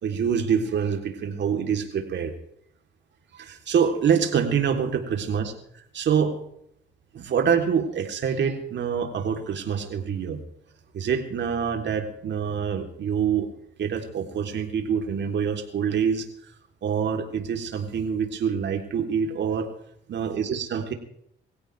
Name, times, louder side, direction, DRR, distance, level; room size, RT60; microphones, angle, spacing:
voice 1, 0.0-2.3 3.4-5.5 5.9-6.4 7.1-10.4 10.9-13.5 13.8-16.3 16.8-19.7 20.1-20.9, right 7 dB, 65° right, 4 dB, 3.6 m, -25 dB
24.0 x 16.0 x 3.5 m, 0.72 s
cardioid pair, 90°, 20 cm